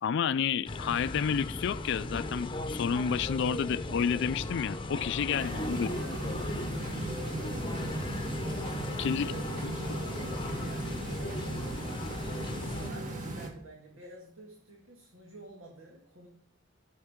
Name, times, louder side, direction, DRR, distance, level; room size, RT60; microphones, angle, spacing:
voice 1, 0.0-5.9 9.0-9.3, left 7 dB, 65° left, 14 dB, 0.4 m, -30 dB
sound 1, 0.7-12.9, left 2 dB, 25° left, 0.8 m, -37 dB
voice 2, 5.3-6.4 7.0-8.1 9.2-12.0 12.3-16.3, right 1 dB, 80° right, -1 dB, 1.9 m, -48 dB
sound 2, 5.4-13.5, right 2 dB, 40° right, 2.1 m, -37 dB
15.0 x 6.5 x 3.7 m, 0.73 s
head